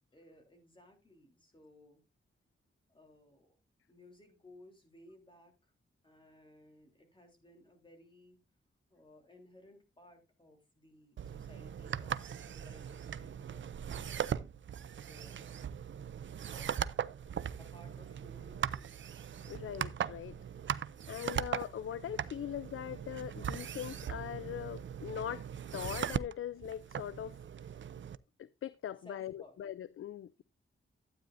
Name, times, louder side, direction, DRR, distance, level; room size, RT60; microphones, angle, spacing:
voice 1, 0.1-2.0 2.9-3.6 3.9-5.7 6.0-8.4 8.9-14.3 14.9-15.6 16.4-19.0 29.0-29.6, left 1 dB, 25° left, 3.4 m, -60 dB
sound 1, 11.2-28.2, right 8 dB, 65° right, 0.5 m, -39 dB
voice 2, 19.5-20.4 21.1-25.5 25.7-27.4 28.4-30.4, left 10 dB, 85° left, 0.4 m, -41 dB
12.0 x 9.0 x 2.6 m
wide cardioid pair, 90°, 21 cm